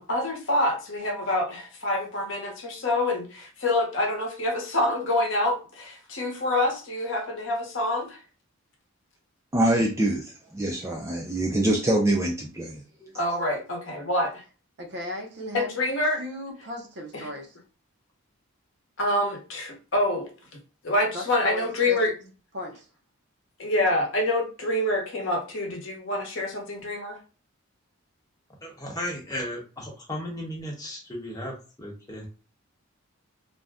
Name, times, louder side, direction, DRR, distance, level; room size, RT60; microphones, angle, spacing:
voice 1, 0.0-8.2 13.1-14.3 15.5-16.2 17.1-17.3 19.0-20.3 20.8-22.1 23.6-27.2, left 1 dB, 60° left, 0.9 m, -26 dB
voice 2, 9.5-13.1, right 1 dB, 15° right, 0.3 m, -25 dB
voice 3, 14.8-15.7 16.2-17.6 21.1-22.0 22.5-22.9, left 1 dB, 55° right, 0.6 m, -36 dB
voice 4, 28.6-32.2, equal, 15° left, 0.9 m, -35 dB
2.5 x 2.1 x 3.4 m
head